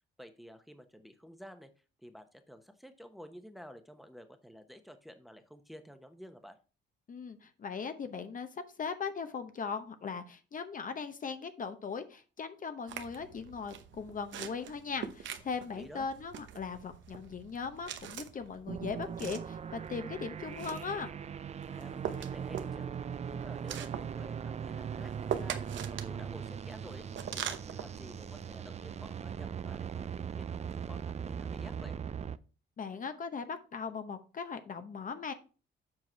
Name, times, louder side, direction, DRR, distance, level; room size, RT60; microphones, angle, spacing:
voice 1, 0.2-1.7 2.0-6.6 15.7-16.1 21.7-22.9 23.2-25.6 25.9-27.1 27.3-32.0, equal, ahead, 8 dB, 1.0 m, -51 dB
voice 2, 7.1-21.1 32.8-35.3, left 5 dB, 40° left, 9 dB, 0.8 m, -39 dB
sound 1, 12.9-28.6, right 9 dB, 70° right, 0.9 m, -44 dB
sound 2, 18.7-32.4, right 7 dB, 35° right, 0.4 m, -40 dB
7.6 x 4.7 x 4.5 m, 0.35 s
cardioid pair, 90°, 20 cm